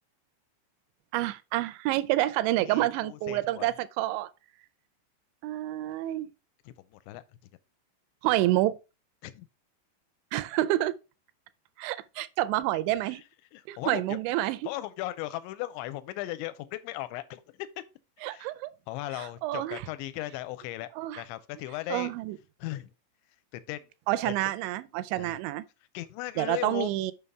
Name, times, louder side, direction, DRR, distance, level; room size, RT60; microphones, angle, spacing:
voice 1, 1.1-4.3 5.4-6.3 8.2-8.8 10.3-11.0 11.8-13.2 13.7-14.6 18.2-18.7 19.1-19.9 21.0-21.2 21.9-22.4 24.1-25.7 26.4-27.1, right 16 dB, 85° right, 2.8 m, -28 dB
voice 2, 2.6-3.7 6.9-7.2 9.2-9.5 13.5-14.2 14.7-17.4 18.3-18.5 18.9-20.9 21.2-22.1 22.6-22.9 23.5-23.9 24.2-24.3 25.1-25.3 25.9-26.9, left 16 dB, 85° left, 2.8 m, -37 dB
6.9 x 5.5 x 3.5 m
omnidirectional pair, 5.2 m